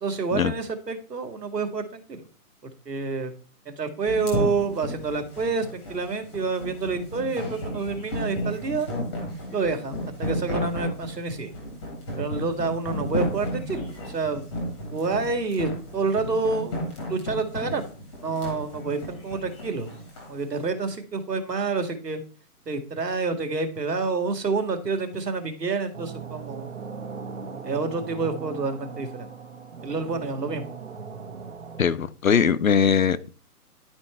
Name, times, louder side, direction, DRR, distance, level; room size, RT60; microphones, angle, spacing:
voice 1, 0.0-2.3 2.6-3.3 3.7-8.9 9.5-11.5 12.2-14.4 14.9-16.8 17.1-17.8 18.2-19.9 20.3-22.2 22.7-26.7 27.6-29.3 29.8-30.7, right 4 dB, 90° right, 7 dB, 2.3 m, -28 dB
sound 1, 4.1-20.3, equal, 5° left, 1.1 m, -33 dB
sound 2, 25.9-31.8, right 5 dB, 50° right, 1.5 m, -38 dB
voice 2, 31.8-33.3, left 7 dB, 60° left, 14 dB, 0.8 m, -21 dB
11.5 x 4.6 x 4.4 m, 0.39 s
hypercardioid pair, 175°, 47 cm